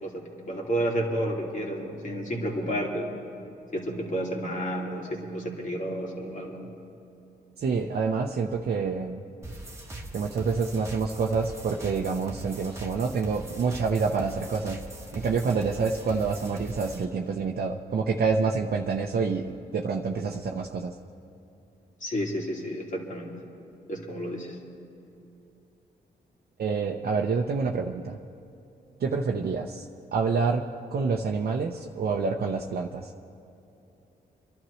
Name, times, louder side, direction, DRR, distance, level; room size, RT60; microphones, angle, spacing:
voice 1, 0.0-3.2 3.7-6.7 22.0-23.3 23.9-24.6, equal, 45° left, -1 dB, 2.5 m, -31 dB
voice 2, 7.6-9.2 10.1-14.8 15.1-20.9 26.6-28.2 29.0-29.9 30.1-30.6 30.9-33.1, right 4 dB, 60° right, 0 dB, 0.8 m, -27 dB
sound 1, 9.4-17.0, right 1 dB, 15° right, 1.5 m, -41 dB
28.0 x 12.0 x 3.2 m, 2.9 s
cardioid pair, 75°, 18 cm